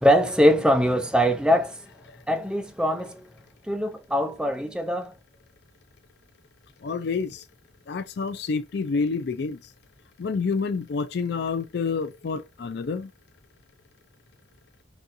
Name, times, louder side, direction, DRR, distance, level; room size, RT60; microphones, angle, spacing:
voice 1, 0.0-1.8 2.3-3.2 3.7-5.1, equal, 5° right, 0.4 m, -22 dB
voice 2, 6.8-7.4 7.9-9.6 10.2-13.1, left 4 dB, 55° left, 0.4 m, -28 dB
4.1 x 2.3 x 2.5 m
head